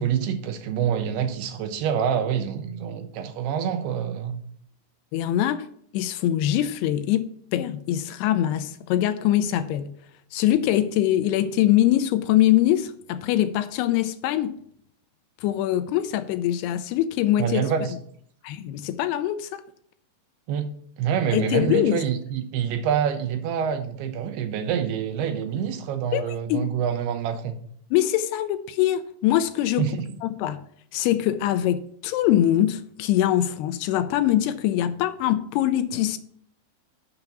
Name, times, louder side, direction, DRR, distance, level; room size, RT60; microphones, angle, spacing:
voice 1, 0.0-4.4 17.4-17.9 20.5-27.6 29.8-30.1, right 8 dB, 80° right, 2.6 m, -26 dB
voice 2, 5.1-5.7 5.9-7.3 7.5-9.9 10.3-14.6 15.4-17.7 18.4-19.6 21.3-22.0 26.1-26.7 27.9-29.9 30.2-30.6 30.9-36.2, left 12 dB, 85° left, 2.5 m, -23 dB
7.0 x 5.8 x 6.6 m
omnidirectional pair, 4.9 m